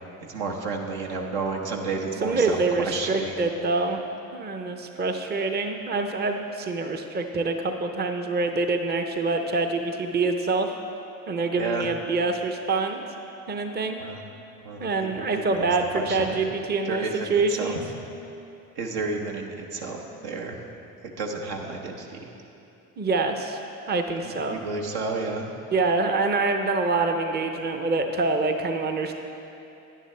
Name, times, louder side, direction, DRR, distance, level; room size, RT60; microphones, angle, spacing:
voice 1, 0.3-3.5 11.6-11.9 14.0-14.2 14.6-15.1 15.3-16.4 16.8-17.8 18.8-20.6 21.0-22.3 24.5-25.5, right 3 dB, 70° right, 1 dB, 1.2 m, -31 dB
voice 2, 2.2-4.0 4.3-10.7 11.3-13.0 13.5-14.0 14.8-17.8 23.0-23.6 23.9-24.6 25.7-29.1, right 3 dB, 25° right, 5 dB, 0.7 m, -25 dB
10.0 x 10.0 x 3.3 m, 2.8 s
hypercardioid pair, 60°, 41 cm